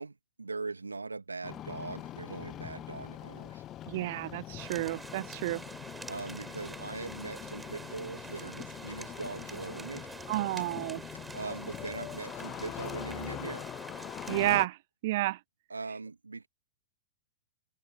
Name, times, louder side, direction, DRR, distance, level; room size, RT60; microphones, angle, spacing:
voice 1, 0.0-3.6 6.1-10.1 11.3-13.7 15.7-16.5, right 3 dB, 85° right, 2.5 m, -41 dB
Engine starting, 1.4-14.7, left 13 dB, 30° left, 0.8 m, -43 dB
voice 2, 3.9-5.6 10.3-11.0 14.3-14.8 15.0-15.4, right 18 dB, 50° right, 0.5 m, -30 dB
sound 1, 4.6-14.6, right 3 dB, 10° right, 6.0 m, -46 dB
sound 2, 7.9-13.4, left 4 dB, 80° left, 7.7 m, -61 dB
figure-of-eight pair, 110°, 0 cm